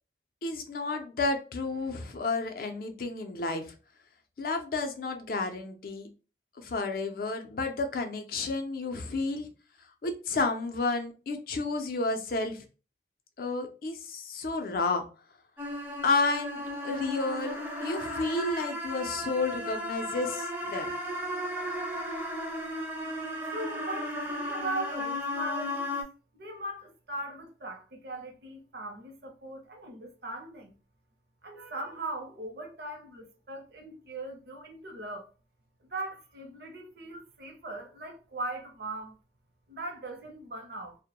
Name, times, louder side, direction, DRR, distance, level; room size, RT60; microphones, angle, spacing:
voice 1, 0.4-3.6 4.4-6.1 6.6-9.5 10.0-12.6 13.4-15.0 16.0-20.9, left 3 dB, 55° left, 0.4 m, -31 dB
sound 1, 15.6-26.0, left 1 dB, 10° right, 0.4 m, -35 dB
voice 2, 23.5-26.0 26.4-30.7 31.4-35.3 35.9-39.2 39.7-41.0, right 2 dB, 60° right, 0.6 m, -39 dB
2.1 x 2.0 x 2.8 m
head